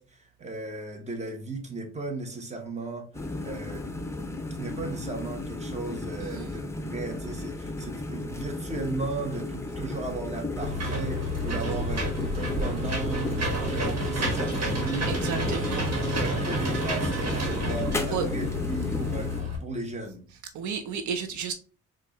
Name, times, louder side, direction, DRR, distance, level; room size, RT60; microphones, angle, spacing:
voice 1, 0.0-3.1 3.4-3.9 4.5-20.3, right 2 dB, 20° right, 1.0 m, -36 dB
sound 1, 3.1-19.4, left 2 dB, 10° left, 0.6 m, -34 dB
Engine / Mechanisms, 10.6-19.6, equal, 55° right, 1.5 m, -30 dB
voice 2, 15.1-15.8 18.1-18.2 20.5-21.5, right 6 dB, 75° right, 0.6 m, -32 dB
4.5 x 2.4 x 2.9 m
cardioid pair, 90°, 30 cm